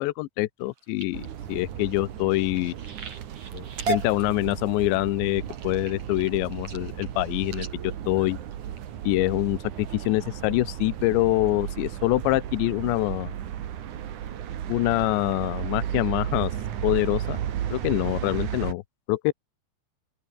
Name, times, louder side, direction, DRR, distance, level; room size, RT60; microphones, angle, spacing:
voice 1, 0.0-2.7 3.5-8.4 9.0-13.3 14.7-16.5 16.8-17.4 17.7-18.8 19.1-19.3, left 19 dB, 85° left, 3.0 m, -25 dB
sound 1, 0.6-9.3 9.9-10.2 10.7-11.0 11.5-11.6 11.9-12.0, right 5 dB, 40° right, 5.3 m, -38 dB
sound 2, 1.1-18.7, right 10 dB, 55° right, 2.5 m, -34 dB
open air
omnidirectional pair, 5.2 m